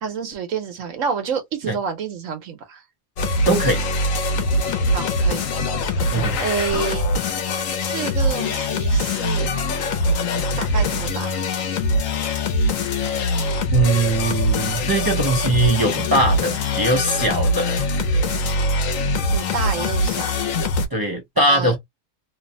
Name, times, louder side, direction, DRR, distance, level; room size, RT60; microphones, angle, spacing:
voice 1, 0.0-2.8 4.9-5.5 6.4-7.1 7.9-9.5 10.6-11.4 19.3-20.3 21.5-21.7, right 6 dB, 80° right, 1.2 m, -28 dB
sound 1, 3.2-20.9, left 1 dB, 85° left, 1.0 m, -22 dB
voice 2, 3.5-3.9 6.1-6.4 13.7-17.9 20.9-21.8, right 2 dB, 35° right, 0.3 m, -21 dB
2.9 x 2.0 x 2.6 m
omnidirectional pair, 1.4 m